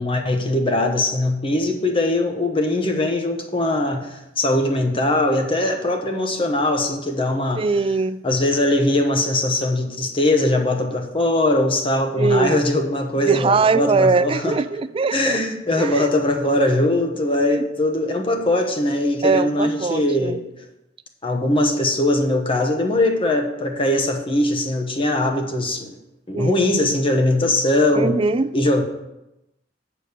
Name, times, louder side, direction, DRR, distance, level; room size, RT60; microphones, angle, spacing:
voice 1, 0.0-7.7 8.2-14.6 15.1-20.4 21.2-26.0 26.3-28.2 28.5-28.8, left 1 dB, 30° left, 4 dB, 1.0 m, -21 dB
voice 2, 7.6-8.2 12.2-12.6 13.3-15.4 15.8-16.1 17.5-17.6 19.2-20.4 26.3-26.6 27.9-28.5, right 4 dB, 30° right, 14 dB, 0.3 m, -21 dB
8.5 x 5.0 x 6.7 m, 0.91 s
head